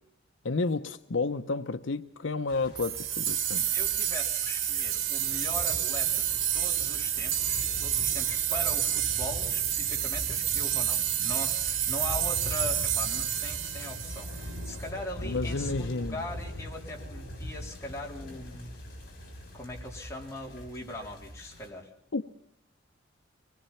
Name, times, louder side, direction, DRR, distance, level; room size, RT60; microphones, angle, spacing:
voice 1, 0.4-3.7 15.2-16.2 22.1-22.2, left 3 dB, 70° left, 0.7 m, -31 dB
sound 1, 2.5-21.7, left 1 dB, 50° left, 6.9 m, -42 dB
sound 2, 2.8-14.8, right 10 dB, 80° right, 1.1 m, -29 dB
voice 2, 3.5-18.7 19.5-21.9, left 2 dB, 15° left, 3.6 m, -40 dB
24.5 x 20.0 x 5.7 m
head